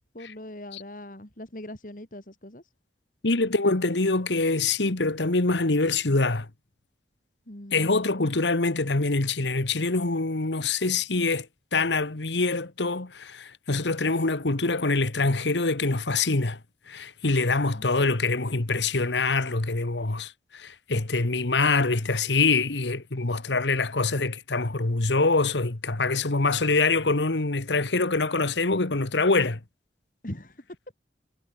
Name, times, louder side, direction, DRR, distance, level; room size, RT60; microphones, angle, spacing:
voice 1, 0.1-2.6 7.5-8.3 30.2-30.7, left 1 dB, 50° left, 3.0 m, -41 dB
voice 2, 3.2-6.5 7.7-16.6 16.9-29.6, left 3 dB, 90° left, 1.5 m, -25 dB
head